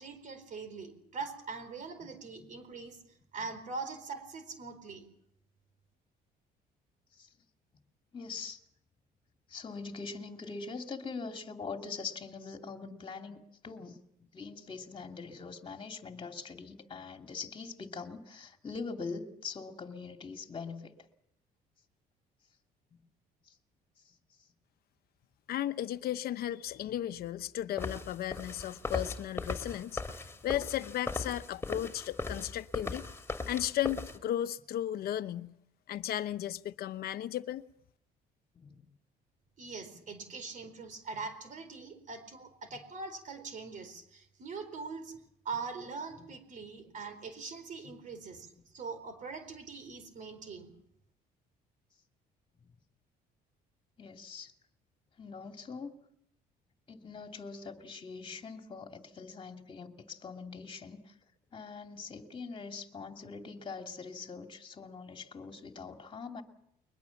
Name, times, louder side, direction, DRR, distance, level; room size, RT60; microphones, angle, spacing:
voice 1, 0.0-5.1 39.6-45.1 45.4-50.7, right 4 dB, 50° right, 4.3 m, -42 dB
voice 2, 8.1-8.6 9.5-20.9 22.9-23.0 23.4-23.6 24.0-24.2 38.5-38.8 41.1-41.2 42.7-42.8 46.2-46.3 48.5-48.6 54.0-54.5 55.2-55.9 56.9-61.2 61.5-66.4, left 4 dB, 30° left, 2.6 m, -43 dB
voice 3, 25.5-30.0 30.4-33.0 33.5-35.5 35.9-37.6, left 12 dB, 65° left, 1.0 m, -35 dB
sound 1, 27.8-34.2, left 3 dB, 15° left, 2.8 m, -38 dB
22.5 x 20.5 x 7.2 m
cardioid pair, 110°, 17 cm